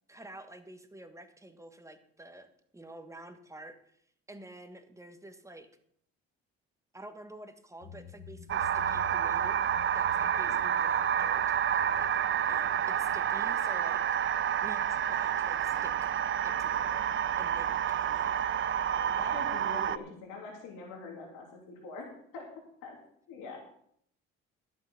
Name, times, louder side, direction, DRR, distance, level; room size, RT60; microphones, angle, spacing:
voice 1, 0.1-4.0 4.3-5.7 6.9-9.6 9.9-12.1 12.4-16.1 16.4-18.5, right 1 dB, 10° right, 8 dB, 1.6 m, -49 dB
sound 1, 7.8-13.3, left 8 dB, 65° left, 1.7 m, -51 dB
sound 2, 8.5-20.0, right 9 dB, 40° right, 0.6 m, -29 dB
voice 2, 10.3-10.6 19.0-22.5 22.8-23.0 23.3-23.6, left 3 dB, 85° left, 0 dB, 3.0 m, -44 dB
11.5 x 8.3 x 5.9 m, 0.67 s
supercardioid pair, 70°, 30 cm